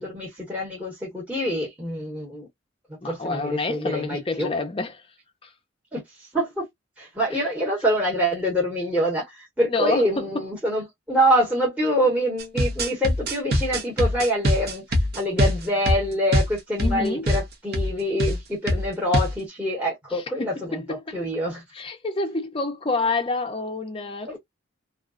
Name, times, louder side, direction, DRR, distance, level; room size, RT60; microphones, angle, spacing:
voice 1, 0.0-2.5 3.1-4.5 5.9-6.0 6.3-6.6 7.0-14.8 15.1-20.8 21.1-21.6 24.3-24.4, equal, 5° right, 1.1 m, -25 dB
voice 2, 3.0-5.1 5.4-5.5 7.3-7.5 9.7-10.5 16.8-17.3 20.1-21.3 21.7-24.4, left 3 dB, 25° left, 0.5 m, -28 dB
sound 1, 12.4-17.0 17.3-17.4 17.7-17.9 18.2-18.4 18.7-19.4, equal, 50° right, 0.8 m, -23 dB
2.4 x 2.2 x 3.6 m
head